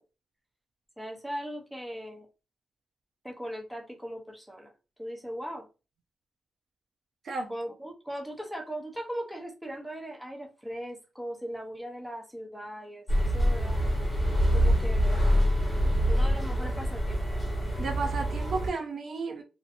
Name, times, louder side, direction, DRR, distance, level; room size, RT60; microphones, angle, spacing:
voice 1, 1.0-2.3 3.2-4.7 5.0-5.7 7.5-13.8 14.4-15.2 15.8-17.3, equal, ahead, 0.6 m, -39 dB
sound 1, 13.1-18.7, equal, 15° left, 1.1 m, -25 dB
voice 2, 17.8-19.4, right 4 dB, 50° right, 0.4 m, -33 dB
2.6 x 2.5 x 2.5 m
cardioid pair, 120°, 0 cm